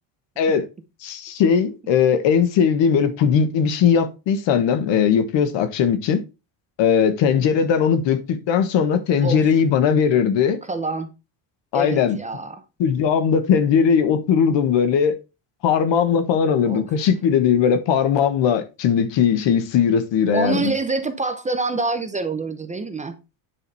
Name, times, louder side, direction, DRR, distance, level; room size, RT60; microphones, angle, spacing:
voice 1, 0.4-0.7 1.0-6.2 6.8-10.6 11.7-12.2 12.8-15.2 15.6-20.7, left 7 dB, 65° left, 1.5 m, -19 dB
voice 2, 10.6-11.1 11.7-12.6 16.7-16.9 20.3-23.2, right 3 dB, 15° right, 0.7 m, -26 dB
9.2 x 5.1 x 4.1 m
cardioid pair, 140°, 48 cm